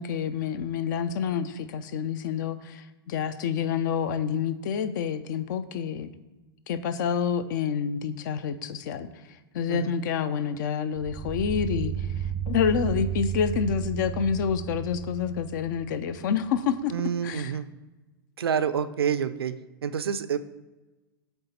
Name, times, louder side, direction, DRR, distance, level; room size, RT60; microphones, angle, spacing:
voice 1, 0.0-6.1 6.7-9.1 9.5-12.1 12.5-16.9 17.2-17.5, left 7 dB, 55° left, 13 dB, 0.5 m, -28 dB
sound 1, 11.0-16.2, right 9 dB, 20° right, 0.4 m, -33 dB
voice 2, 16.9-17.7 18.4-20.4, right 7 dB, 80° right, 12 dB, 0.4 m, -28 dB
7.9 x 3.4 x 4.2 m, 1.1 s
figure-of-eight pair, 105°, 13 cm